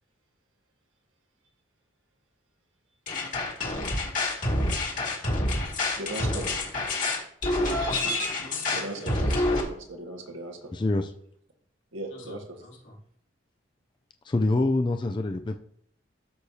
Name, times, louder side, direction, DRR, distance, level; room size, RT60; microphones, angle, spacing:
sound 1, 3.1-9.6, left 2 dB, 45° left, 2.1 m, -27 dB
voice 1, 6.0-6.4 8.0-8.1 8.7-10.7 11.9-12.6, right 2 dB, 85° right, 2 dB, 1.6 m, -38 dB
voice 2, 7.4-9.5 10.6-10.7 12.1-13.0, left 1 dB, 80° left, -4 dB, 2.8 m, -48 dB
voice 3, 10.7-11.1 14.3-15.6, left 2 dB, 25° left, 6 dB, 0.4 m, -25 dB
13.0 x 6.5 x 2.8 m, 0.65 s
head